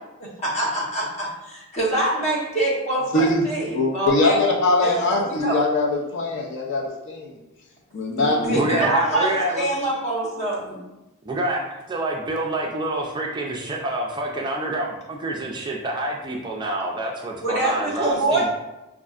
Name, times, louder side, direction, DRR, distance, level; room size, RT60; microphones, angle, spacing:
voice 1, 0.2-4.4 4.8-5.6 8.4-10.8 17.4-18.5, right 1 dB, 30° left, -5 dB, 1.0 m, -25 dB
voice 2, 3.1-7.3 7.9-8.5, left 2 dB, 55° left, -3 dB, 0.5 m, -22 dB
voice 3, 8.4-9.7 11.3-18.5, right 1 dB, 20° right, -1 dB, 0.3 m, -27 dB
5.1 x 2.4 x 2.4 m, 1.0 s
head